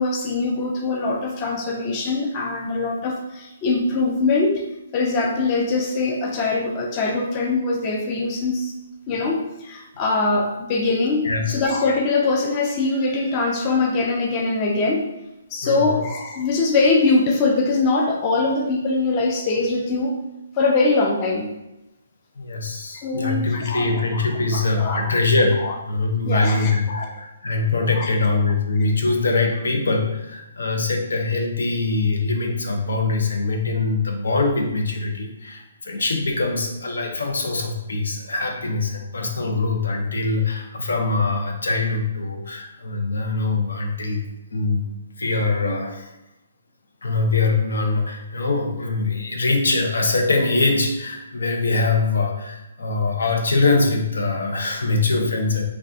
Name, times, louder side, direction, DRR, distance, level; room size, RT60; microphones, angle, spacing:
voice 1, 0.0-4.6 4.9-8.7 9.1-15.1 15.5-20.1 20.5-21.5 22.9-24.0 24.3-25.1 25.6-25.8 26.2-27.1 27.9-28.1, left 3 dB, 20° left, 0 dB, 0.3 m, -22 dB
voice 2, 15.6-16.0 22.4-25.6 25.9-44.3 44.5-44.8 45.2-46.1 47.0-55.6, left 3 dB, 90° left, 3 dB, 0.6 m, -23 dB
3.3 x 2.3 x 2.6 m, 0.95 s
hypercardioid pair, 170°, 0 cm